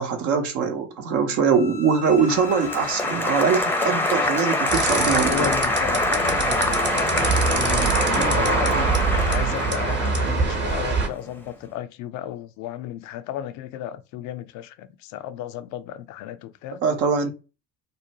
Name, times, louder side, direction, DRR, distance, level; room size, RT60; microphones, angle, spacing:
voice 1, 0.0-5.5 16.8-17.3, right 6 dB, 60° right, 0.7 m, -22 dB
sound 1, 1.4-7.6, left 4 dB, 90° left, 0.8 m, -38 dB
Applause, 2.2-11.3, left 2 dB, 5° left, 0.6 m, -25 dB
sound 2, 4.7-11.1, right 4 dB, 30° right, 0.9 m, -24 dB
voice 2, 5.3-8.9 9.3-16.8, left 12 dB, 60° left, 0.5 m, -33 dB
2.6 x 2.1 x 2.8 m
hypercardioid pair, 55°, 33 cm